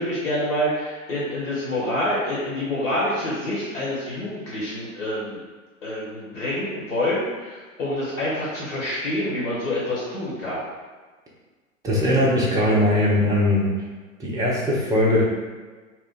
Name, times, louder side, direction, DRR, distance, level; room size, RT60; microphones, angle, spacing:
voice 1, 0.0-5.4 5.8-10.6, left 1 dB, 75° left, -7 dB, 1.3 m, -27 dB
voice 2, 11.8-13.7 14.2-15.2, left 1 dB, 10° right, -5 dB, 0.5 m, -20 dB
2.9 x 2.2 x 4.0 m, 1.4 s
figure-of-eight pair, 100°, 41 cm